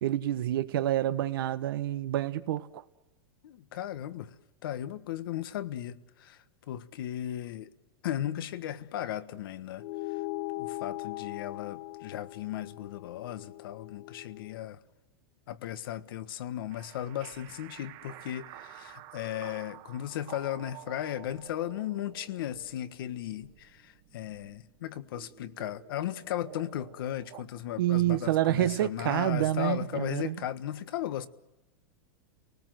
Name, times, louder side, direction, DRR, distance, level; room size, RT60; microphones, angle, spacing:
voice 1, 0.0-2.8 27.8-30.3, right 14 dB, 70° right, 1.1 m, -28 dB
voice 2, 3.4-4.3 4.6-6.4 6.7-7.7 8.0-9.8 10.6-14.8 15.5-31.3, left 12 dB, 70° left, 1.4 m, -36 dB
sound 1, 9.8-14.6, left 20 dB, 45° left, 1.2 m, -40 dB
sound 2, 16.7-27.4, right 15 dB, 45° right, 1.5 m, -50 dB
29.5 x 19.5 x 7.8 m
supercardioid pair, 140°, 12 cm